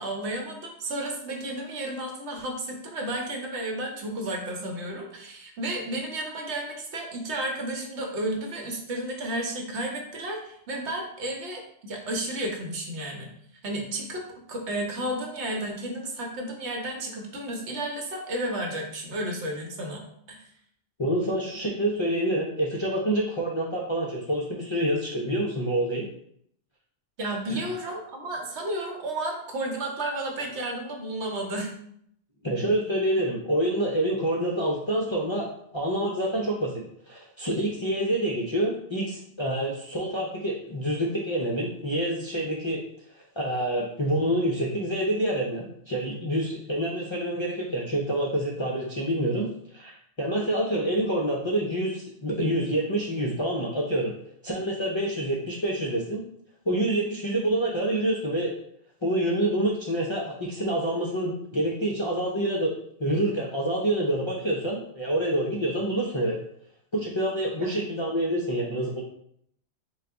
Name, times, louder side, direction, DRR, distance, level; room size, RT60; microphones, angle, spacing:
voice 1, 0.0-13.3 13.6-14.2 14.5-20.0 20.3-20.4 27.2-31.7 67.6-67.7, right 1 dB, 75° right, 1 dB, 1.1 m, -32 dB
voice 2, 21.0-26.0 27.5-27.7 32.4-35.5 35.7-36.7 37.0-42.8 43.4-54.1 54.4-56.2 56.7-58.5 59.0-62.7 63.0-66.4 66.9-69.0, right 1 dB, 45° left, -5 dB, 0.4 m, -27 dB
3.8 x 2.4 x 3.3 m, 0.69 s
omnidirectional pair, 1.2 m